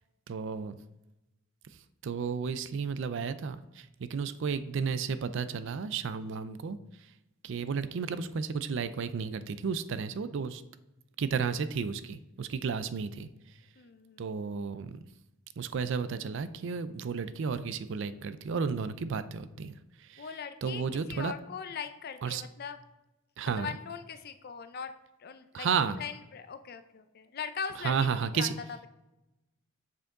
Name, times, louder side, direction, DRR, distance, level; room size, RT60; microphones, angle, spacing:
voice 1, 0.3-0.8 2.0-6.8 7.4-10.6 11.2-13.3 14.2-15.0 15.6-19.7 20.1-20.3 20.6-21.3 22.2-22.4 23.4-23.7 25.5-26.0 27.8-28.6, right 5 dB, 65° right, 13 dB, 0.4 m, -32 dB
voice 2, 13.8-14.3 20.2-20.8 21.1-22.8 23.5-24.9 25.2-25.7 26.0-28.5, left 6 dB, 50° left, 10 dB, 0.5 m, -40 dB
6.8 x 5.2 x 3.7 m, 0.96 s
head